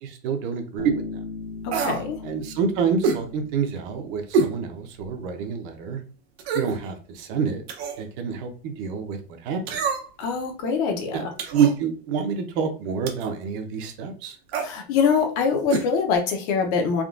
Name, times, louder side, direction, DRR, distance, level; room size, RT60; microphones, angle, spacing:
voice 1, 0.0-1.0 2.2-6.0 6.5-7.6 8.0-9.2 9.4-9.6 11.1-14.4, right 6 dB, 50° right, 6 dB, 0.7 m, -27 dB
Bass guitar, 0.8-4.6, left 3 dB, 65° left, 1.0 m, -38 dB
sound 1, 1.7-2.1 3.0-3.2 4.3-4.6 5.0-5.1 6.4-6.8 7.7-8.0 9.7-10.2 11.4-11.8 13.1-13.3 14.5-14.7 15.7-15.9 16.1-16.2, right 4 dB, 80° right, 0.8 m, -26 dB
voice 2, 1.8-2.2 10.2-11.3 14.6-17.0, left 5 dB, 45° left, 4 dB, 0.7 m, -24 dB
3.6 x 2.2 x 2.4 m, 0.38 s
supercardioid pair, 155°, 31 cm